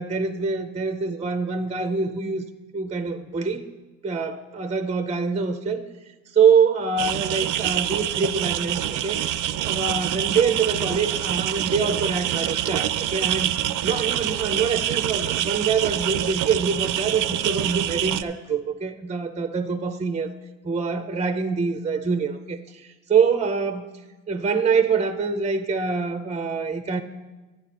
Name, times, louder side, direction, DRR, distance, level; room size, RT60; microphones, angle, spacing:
voice 1, 0.0-2.5 2.7-3.7 4.0-5.8 6.3-9.2 9.6-13.5 13.8-20.3 20.6-23.9 24.3-27.0, right 5 dB, 20° right, 9 dB, 0.5 m, -25 dB
sound 1, 7.0-18.2, right 12 dB, 80° right, 0.4 m, -26 dB
11.5 x 9.3 x 4.2 m, 1.2 s
cardioid pair, 90°, 30 cm